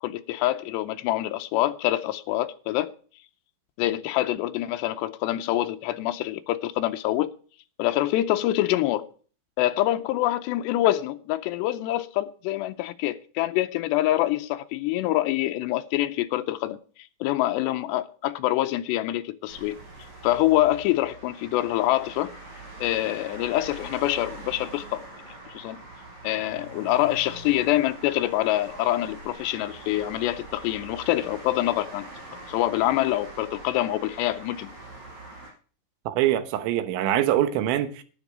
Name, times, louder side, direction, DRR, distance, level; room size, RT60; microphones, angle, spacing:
voice 1, 0.0-2.9 3.8-7.3 7.8-9.1 9.6-16.8 17.2-19.8 20.2-22.4 22.8-25.0 25.5-25.8 26.2-32.1 32.5-34.7, left 15 dB, 80° left, 2.6 m, -25 dB
sound 1, 19.5-35.5, right 2 dB, 50° right, 6.3 m, -43 dB
voice 2, 36.1-38.0, right 12 dB, 80° right, 3.4 m, -24 dB
11.0 x 9.9 x 4.9 m
omnidirectional pair, 5.4 m